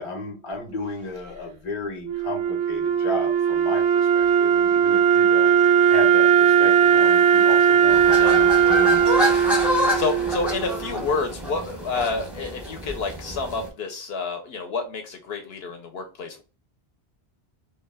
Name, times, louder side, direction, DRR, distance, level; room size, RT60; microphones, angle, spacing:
voice 1, 0.0-5.5 5.9-9.3, left 2 dB, 35° left, 2 dB, 0.7 m, -34 dB
Wind instrument woodwind instrument, 2.0-11.1, right 8 dB, 85° right, 0.8 m, -19 dB
sound 1, 7.9-13.7, left 1 dB, ahead, 0.5 m, -27 dB
voice 2, 8.2-8.5 10.0-16.4, left 4 dB, 70° left, 5 dB, 0.8 m, -29 dB
2.3 x 2.2 x 3.2 m, 0.33 s
omnidirectional pair, 1.1 m